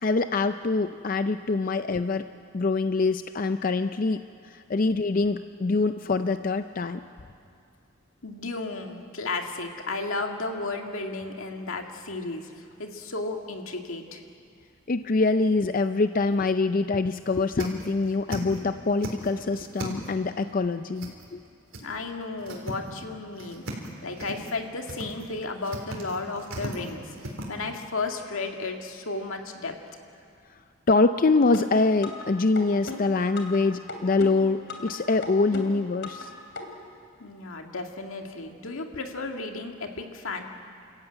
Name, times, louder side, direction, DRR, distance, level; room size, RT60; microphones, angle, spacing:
voice 1, 0.0-2.3 2.5-7.0 14.9-21.4 30.9-36.3, left 3 dB, 40° left, 10 dB, 0.5 m, -24 dB
voice 2, 8.2-14.2 21.8-23.7 24.0-29.7 37.2-40.4, left 3 dB, 85° left, 3 dB, 2.1 m, -34 dB
sound 1, 15.4-15.9 16.3-16.4 16.8-16.9 17.1-18.6 18.9-20.2 21.0-21.5 21.7-21.8 22.2-23.0 23.3-23.9 24.2-24.6 24.9-25.3 25.6-27.5, right 1 dB, 75° right, 3.9 m, -37 dB
sound 2, 31.5-32.3 32.6-33.6 33.9-34.9 35.2-36.3 36.6-36.7, left 3 dB, 60° left, 2.8 m, -36 dB
29.5 x 14.5 x 9.0 m, 2.4 s
head